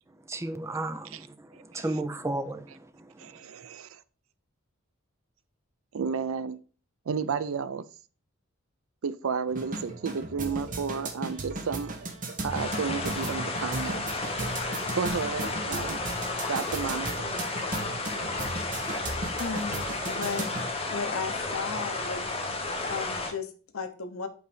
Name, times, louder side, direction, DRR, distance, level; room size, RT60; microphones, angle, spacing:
voice 1, 0.3-3.4, right 2 dB, 15° right, 0.4 m, -34 dB
voice 2, 1.5-1.9 3.2-4.0 5.9-6.6 7.1-7.9 9.0-11.9 12.4-14.0 14.9-16.0 16.5-17.4, right 5 dB, 80° right, 0.5 m, -32 dB
sound 1, 9.5-20.6, right 2 dB, 40° right, 1.0 m, -36 dB
sound 2, 12.5-23.3, left 3 dB, 30° left, 1.0 m, -32 dB
voice 3, 19.1-20.5 20.9-22.3 22.9-24.3, left 5 dB, 85° left, 0.9 m, -35 dB
5.4 x 3.9 x 4.8 m
head